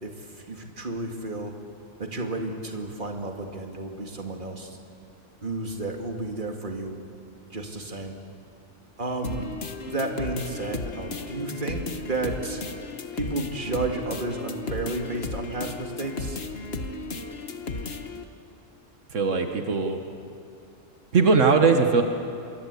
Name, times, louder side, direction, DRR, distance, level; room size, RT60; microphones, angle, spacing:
voice 1, 0.0-1.5 2.0-4.8 5.4-7.0 7.5-8.2 9.0-9.5 9.8-12.6 13.1-16.4, right 2 dB, 45° right, 2 dB, 2.4 m, -32 dB
sound 1, 9.2-18.2, left 3 dB, 60° left, 1.5 m, -34 dB
voice 2, 19.1-20.0 21.1-22.0, right 4 dB, 90° right, 5 dB, 1.8 m, -20 dB
27.0 x 23.0 x 8.4 m, 2.6 s
omnidirectional pair, 1.2 m